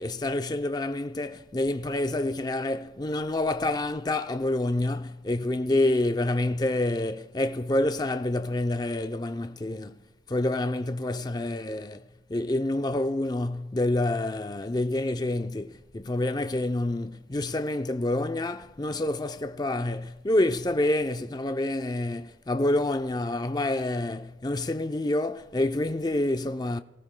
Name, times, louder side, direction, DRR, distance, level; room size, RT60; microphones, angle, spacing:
voice 1, 0.0-10.0 10.3-12.0 12.3-26.8, left 1 dB, 25° left, 0.5 m, -28 dB
27.0 x 18.0 x 2.2 m
head